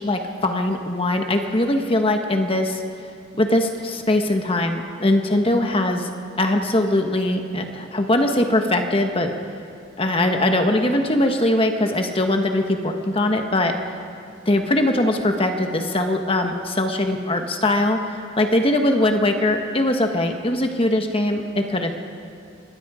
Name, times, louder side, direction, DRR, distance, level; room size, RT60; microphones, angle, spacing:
voice 1, 0.0-2.8 3.4-6.1 6.4-9.3 10.0-13.8 14.5-18.0 18.4-21.9, left 1 dB, 25° left, 4 dB, 1.3 m, -21 dB
26.0 x 20.5 x 5.0 m, 2.4 s
head